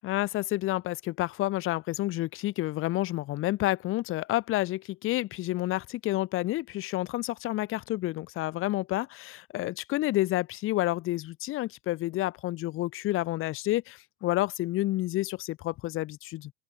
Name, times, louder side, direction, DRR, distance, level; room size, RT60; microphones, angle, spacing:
voice 1, 0.0-16.5, left 16 dB, 30° left, 2.6 m, -29 dB
open air
supercardioid pair, 170°, 41 cm